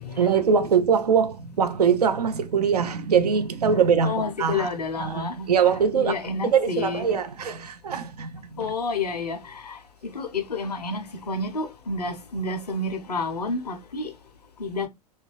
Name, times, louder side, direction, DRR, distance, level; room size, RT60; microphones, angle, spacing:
voice 1, 0.2-4.7 5.0-8.7, right 6 dB, 75° right, 0.5 m, -23 dB
voice 2, 4.0-5.5 5.9-7.1 8.6-14.1 14.6-14.9, left 3 dB, 80° left, 0.6 m, -30 dB
2.7 x 2.5 x 3.1 m
figure-of-eight pair, 85°, 20 cm